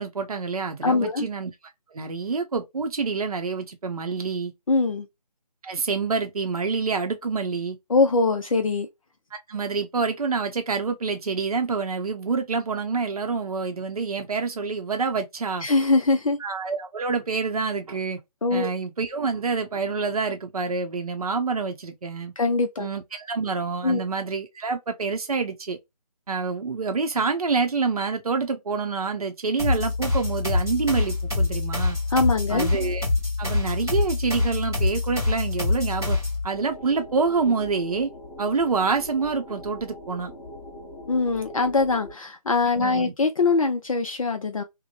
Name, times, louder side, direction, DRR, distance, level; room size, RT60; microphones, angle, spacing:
voice 1, 0.0-1.5 1.9-4.5 5.6-7.8 9.5-15.7 16.4-18.2 18.5-22.3 22.8-25.8 26.3-32.0 32.5-33.1 33.4-36.2 36.4-38.1 38.4-40.3 42.8-43.1, right 4 dB, 65° right, 0.7 m, -27 dB
voice 2, 0.8-1.3 4.7-5.1 7.9-8.9 15.6-16.4 18.4-18.7 22.4-22.9 23.8-24.0 32.1-32.7 41.1-44.6, left 3 dB, 55° left, 0.5 m, -22 dB
sound 1, 29.6-36.4, left 3 dB, 5° right, 0.4 m, -25 dB
sound 2, 36.5-42.1, left 1 dB, 10° left, 1.0 m, -41 dB
3.0 x 2.1 x 2.4 m
figure-of-eight pair, 155°, 21 cm